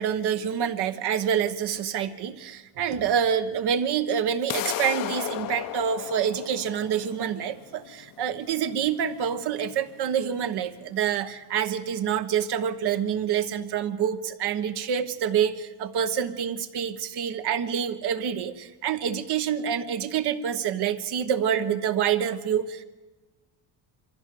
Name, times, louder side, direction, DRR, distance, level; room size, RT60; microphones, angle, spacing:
voice 1, 0.0-22.8, right 8 dB, 60° right, 10 dB, 1.3 m, -27 dB
sound 1, 4.5-10.5, left 12 dB, 45° left, 0.7 m, -35 dB
23.5 x 14.5 x 7.8 m, 1.2 s
cardioid pair, 145°, 46 cm